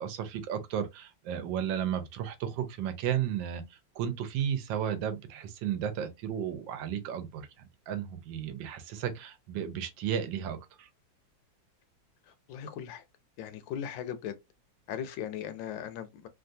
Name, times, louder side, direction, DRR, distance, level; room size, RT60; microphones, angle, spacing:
voice 1, 0.0-3.6 4.0-7.5 7.9-10.9, right 9 dB, 80° right, 1.3 m, -33 dB
voice 2, 12.3-13.0 13.4-14.4 14.9-16.3, left 9 dB, 80° left, 1.2 m, -38 dB
3.2 x 2.3 x 2.6 m
omnidirectional pair, 2.1 m